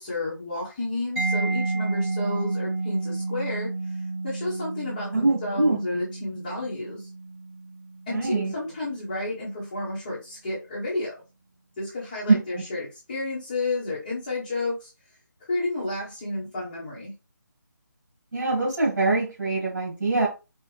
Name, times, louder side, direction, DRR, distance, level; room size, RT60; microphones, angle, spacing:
voice 1, 0.0-7.1 8.1-11.1 11.8-14.9 15.5-17.1, left 2 dB, 20° left, -7 dB, 1.2 m, -31 dB
Mallet percussion, 1.2-8.7, right 3 dB, 5° right, 0.7 m, -31 dB
voice 2, 5.1-5.8 8.1-8.5 12.3-12.4 18.3-20.3, right 3 dB, 60° right, -4 dB, 1.9 m, -23 dB
5.3 x 2.5 x 3.4 m, 0.30 s
figure-of-eight pair, 170°, 11 cm